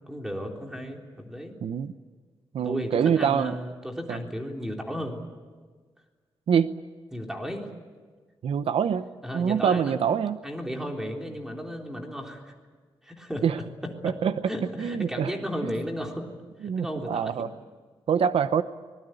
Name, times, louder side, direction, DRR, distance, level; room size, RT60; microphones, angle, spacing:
voice 1, 0.1-1.6 2.6-5.2 7.1-7.7 9.2-10.0 10.4-12.5 13.0-13.6 14.0-14.1 14.5-16.3 16.6-17.3, equal, 5° right, 1 dB, 3.7 m, -34 dB
voice 2, 1.6-1.9 2.5-3.5 4.1-4.2 6.5-6.7 8.4-9.1 9.3-10.4 13.4-13.6 14.0-14.3 14.8-15.3 15.6-15.7 16.6-17.5 18.1-18.6, right 7 dB, 85° right, 12 dB, 0.9 m, -25 dB
25.0 x 20.5 x 9.2 m, 1.5 s
wide cardioid pair, 150°, 10 cm